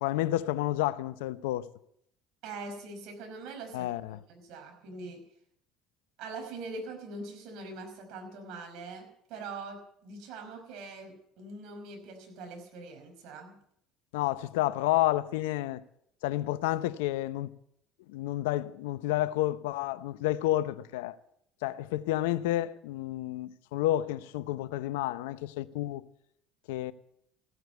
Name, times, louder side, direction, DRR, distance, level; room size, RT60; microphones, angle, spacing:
voice 1, 0.0-1.7 3.7-4.2 14.1-15.8 16.2-17.5 18.1-21.2 21.6-26.1 26.7-26.9, left 15 dB, 80° left, 0.7 m, -30 dB
voice 2, 2.4-5.2 6.2-13.6, right 3 dB, 70° right, 5.3 m, -43 dB
16.0 x 9.2 x 8.0 m
hypercardioid pair, 70°, 0 cm